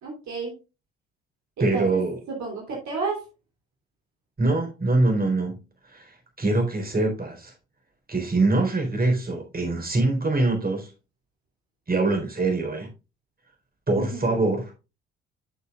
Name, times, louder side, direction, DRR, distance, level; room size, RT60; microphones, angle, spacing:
voice 1, 0.0-0.5 1.6-2.0 2.3-3.2 13.9-14.5, right 4 dB, 55° right, 3.2 m, -32 dB
voice 2, 1.6-2.2 4.4-5.5 5.9-7.5 8.1-10.9 11.9-12.9 13.9-14.7, right 2 dB, 25° right, 4.0 m, -24 dB
12.5 x 6.8 x 2.4 m
figure-of-eight pair, 50°, 34 cm